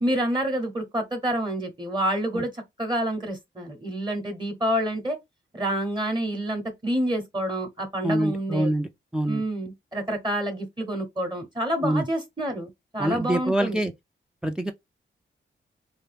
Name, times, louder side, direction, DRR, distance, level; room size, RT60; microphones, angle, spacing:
voice 1, 0.0-5.2 5.5-8.7 9.3-13.8, right 1 dB, 20° right, 0.8 m, -28 dB
voice 2, 8.0-9.4 11.8-12.1 13.0-13.9 14.4-14.7, right 1 dB, 5° right, 0.3 m, -25 dB
2.8 x 2.2 x 3.3 m
wide cardioid pair, 85°, 21 cm